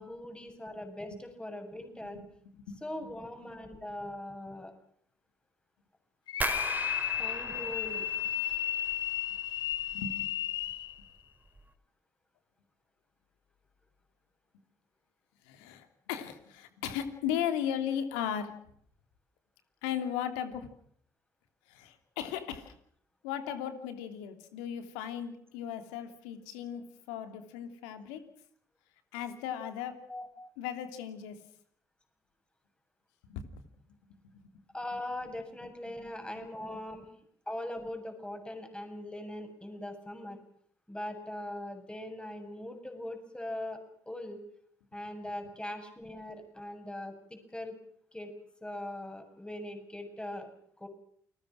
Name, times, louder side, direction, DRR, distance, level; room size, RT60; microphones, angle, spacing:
voice 1, 0.0-2.2 2.8-4.7 7.2-8.1 30.1-30.5 34.7-37.1 37.5-40.4 40.9-44.4 44.9-47.8 48.1-48.3 48.6-50.5 50.8-50.9, left 1 dB, 10° left, 6 dB, 7.3 m, -41 dB
sound 1, 6.3-11.0, left 11 dB, 65° left, 1.1 m, -33 dB
sound 2, 6.4-9.3 9.6-10.3 10.6-11.0 11.5-11.6, right 2 dB, 20° right, 4.4 m, -39 dB
voice 2, 9.9-10.3 15.4-18.5 19.8-20.7 21.7-22.7 23.2-28.2 29.1-29.9 30.6-31.4 33.2-33.4 34.3-34.6, left 9 dB, 80° left, 8 dB, 2.9 m, -36 dB
29.0 x 20.5 x 6.3 m, 0.65 s
hypercardioid pair, 50°, 8 cm